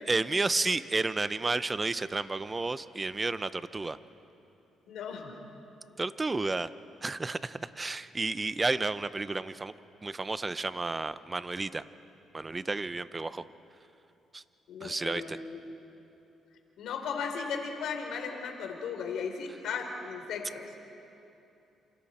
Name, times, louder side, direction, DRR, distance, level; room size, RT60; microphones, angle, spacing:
voice 1, 0.1-4.0 6.0-6.7 7.0-9.7 10.0-11.8 12.3-13.5 14.3-14.4 14.8-15.4, right 3 dB, 25° right, 14 dB, 0.7 m, -31 dB
voice 2, 4.9-5.4 14.7-15.6 16.8-20.7, left 5 dB, 80° left, 3 dB, 3.5 m, -36 dB
29.0 x 28.0 x 4.3 m, 2.8 s
cardioid pair, 90°, 0 cm